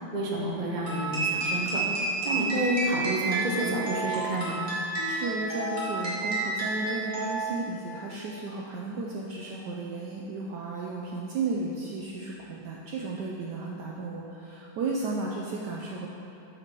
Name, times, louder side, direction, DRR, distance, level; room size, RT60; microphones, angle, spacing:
voice 1, 0.1-1.8 2.2-4.6, right 1 dB, 55° right, -3 dB, 0.5 m, -29 dB
sound 1, 0.8-7.7, right 2 dB, 25° right, 1.6 m, -30 dB
voice 2, 5.0-16.1, right 3 dB, 75° right, -2 dB, 0.9 m, -34 dB
6.5 x 5.8 x 4.5 m, 2.7 s
omnidirectional pair, 2.3 m